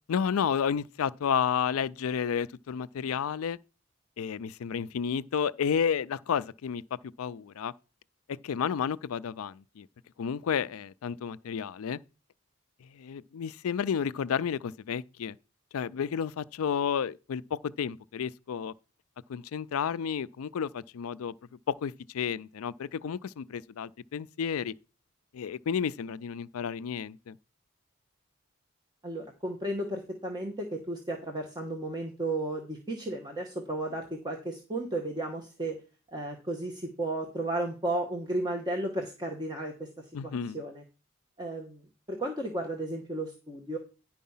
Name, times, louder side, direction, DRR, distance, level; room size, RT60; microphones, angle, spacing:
voice 1, 0.1-3.6 4.2-6.8 7.2-7.7 8.3-9.9 10.2-12.0 12.8-15.4 15.7-18.7 19.3-21.3 21.7-24.7 25.3-27.4 40.1-40.6, left 7 dB, 85° left, 0.4 m, -31 dB
voice 2, 29.0-35.8 36.1-40.8 41.4-43.8, right 2 dB, 20° right, 1.1 m, -34 dB
10.5 x 4.6 x 5.5 m
head